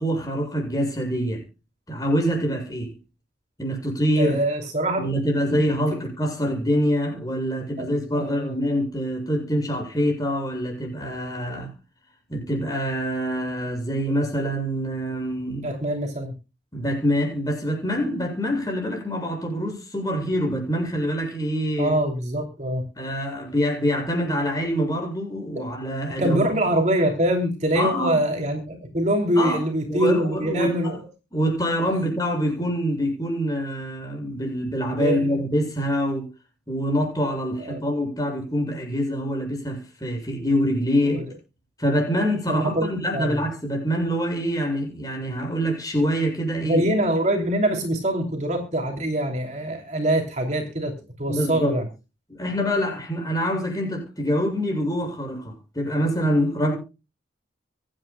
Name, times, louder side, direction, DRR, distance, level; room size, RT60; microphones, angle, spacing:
voice 1, 0.0-1.4 1.9-2.9 3.6-4.4 5.0-11.7 12.3-15.7 16.7-21.9 23.0-26.4 27.7-28.2 29.3-29.6 29.9-31.0 31.3-36.3 36.7-41.2 41.8-46.8 51.3-51.8 52.3-56.8, equal, 20° left, 7.5 m, -25 dB
voice 2, 4.2-5.1 5.5-5.6 7.8-8.5 15.6-16.3 21.8-22.8 26.2-31.0 35.0-35.4 37.6-37.8 41.0-41.2 42.5-43.4 46.6-50.9 51.2-51.9, right 1 dB, 40° right, 2.9 m, -24 dB
25.0 x 9.4 x 2.2 m
head